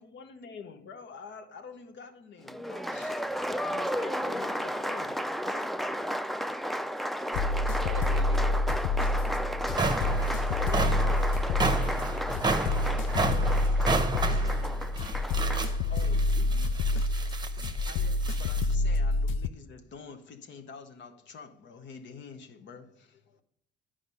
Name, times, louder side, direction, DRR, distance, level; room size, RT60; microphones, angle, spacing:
voice 1, 0.0-5.9 10.7-11.4 15.6-16.2 16.5-16.7 17.2-23.4, left 5 dB, 65° left, 0.9 m, -47 dB
Applause, 2.5-15.7, equal, ahead, 0.3 m, -33 dB
voice 2, 3.4-4.8 11.7-15.5 16.0-16.5 17.1-17.2, left 2 dB, 35° left, 1.7 m, -50 dB
sound 1, 7.3-19.5, left 2 dB, 85° left, 0.4 m, -28 dB
voice 3, 7.8-10.0, right 9 dB, 65° right, 0.6 m, -46 dB
sound 2, 9.5-18.7, right 4 dB, 20° right, 0.7 m, -32 dB
9.9 x 5.0 x 5.4 m
cardioid pair, 90°, 20 cm